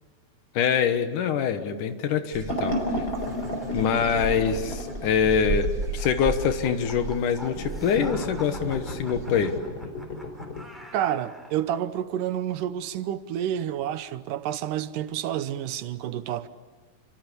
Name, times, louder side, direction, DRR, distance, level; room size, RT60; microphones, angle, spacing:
voice 1, 0.6-2.7 3.7-9.5, left 7 dB, 80° left, 2.8 m, -24 dB
sound 1, 2.3-9.6, right 2 dB, 20° right, 2.9 m, -35 dB
sound 2, 2.5-5.2 7.5-10.6, left 1 dB, 30° left, 3.7 m, -32 dB
sound 3, 3.1-11.6, equal, ahead, 3.3 m, -44 dB
voice 2, 10.9-16.5, right 11 dB, 85° right, 2.6 m, -29 dB
29.0 x 25.5 x 6.8 m
omnidirectional pair, 3.6 m